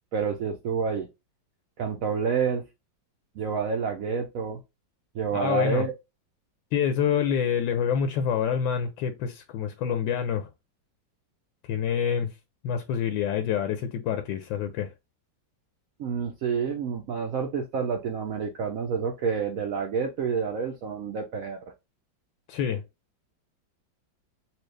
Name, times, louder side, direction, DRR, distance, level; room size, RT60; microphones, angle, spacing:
voice 1, 0.1-1.1 1.8-2.7 3.4-4.6 5.1-5.9 16.0-21.6, right 6 dB, 75° right, 0.7 m, -28 dB
voice 2, 5.3-5.9 6.7-10.5 11.7-12.3 12.6-14.9 22.5-22.8, left 8 dB, 80° left, 1.3 m, -27 dB
4.4 x 2.3 x 3.2 m
omnidirectional pair, 2.1 m